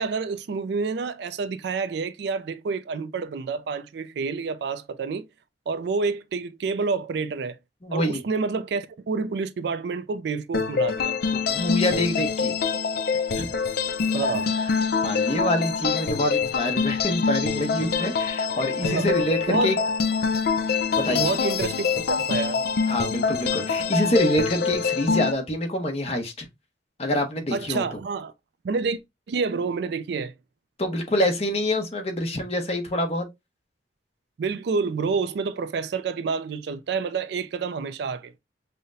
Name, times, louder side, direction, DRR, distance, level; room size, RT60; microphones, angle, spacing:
voice 1, 0.0-5.3 5.7-7.6 7.9-11.1 14.1-14.5 18.8-19.1 19.5-19.7 21.1-22.6 27.5-28.3 28.6-29.0 29.3-30.3 34.4-38.3, right 4 dB, 65° right, 0.4 m, -28 dB
voice 2, 7.8-8.2 11.3-12.5 13.3-13.5 15.0-19.8 20.9-21.4 22.9-26.5 27.0-28.0 30.8-33.3, left 1 dB, 35° left, 0.8 m, -26 dB
sound 1, 10.5-25.3, left 5 dB, 55° left, 0.4 m, -25 dB
5.5 x 2.1 x 2.6 m
head